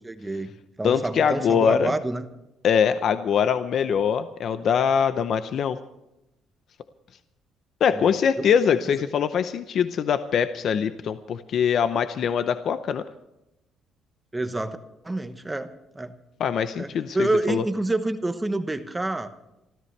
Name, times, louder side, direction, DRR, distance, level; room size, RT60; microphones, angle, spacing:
voice 1, 0.0-0.5 0.8-2.2 7.9-8.0 14.3-14.8 15.0-15.7 15.9-16.1 16.8-19.3, right 2 dB, 10° right, 9 dB, 1.0 m, -27 dB
voice 2, 0.8-1.9 2.6-5.8 7.8-13.0 16.4-17.6, left 7 dB, 50° left, 11 dB, 0.7 m, -23 dB
27.5 x 14.0 x 3.3 m, 0.93 s
cardioid pair, 155°, 0 cm